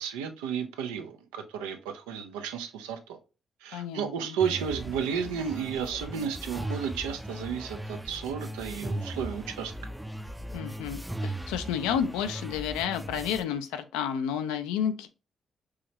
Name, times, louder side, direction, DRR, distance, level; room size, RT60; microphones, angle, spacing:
voice 1, 0.0-3.2 3.6-9.7, right 7 dB, 85° right, 0.5 m, -33 dB
voice 2, 3.7-4.4 10.5-15.1, left 8 dB, 85° left, 0.4 m, -31 dB
sound 1, 4.4-13.4, right 1 dB, 5° right, 0.4 m, -38 dB
4.8 x 3.0 x 2.8 m
hypercardioid pair, 45°, 0 cm